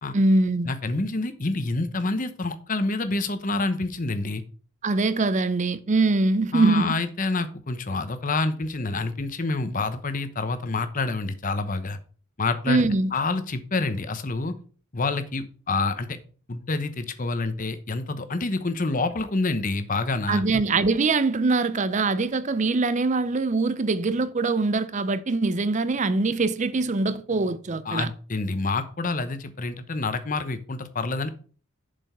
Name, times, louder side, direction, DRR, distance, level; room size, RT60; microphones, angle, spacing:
voice 1, 0.1-0.7 4.8-7.0 12.7-13.1 20.3-28.1, right 3 dB, 35° right, 0.5 m, -23 dB
voice 2, 0.7-4.4 6.5-12.0 12.4-12.8 13.1-14.5 14.9-16.2 16.5-20.4 27.8-31.3, left 3 dB, 35° left, 0.9 m, -27 dB
7.4 x 5.2 x 5.5 m
head